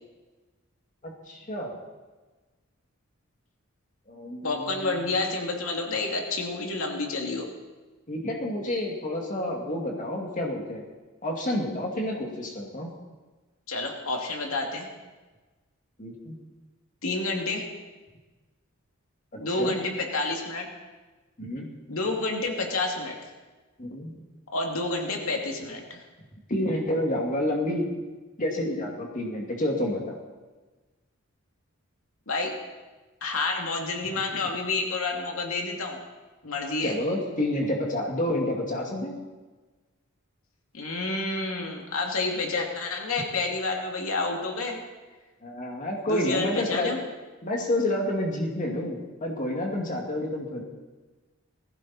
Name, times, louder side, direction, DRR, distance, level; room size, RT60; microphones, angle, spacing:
voice 1, 1.0-1.7 4.1-5.1 8.1-10.8 11.2-12.9 16.0-16.4 19.3-19.8 21.4-21.7 23.8-24.1 26.5-27.9 28.4-30.2 36.8-39.1 45.4-47.0 47.4-50.6, left 1 dB, 40° left, 0 dB, 2.3 m, -29 dB
voice 2, 4.4-7.5 13.7-14.9 17.0-17.7 19.4-20.7 21.9-23.2 24.5-26.0 32.3-32.6 33.2-36.0 36.4-37.0 40.7-44.8 46.1-47.0, left 3 dB, 75° left, 1 dB, 2.5 m, -29 dB
19.5 x 16.0 x 4.3 m, 1.2 s
head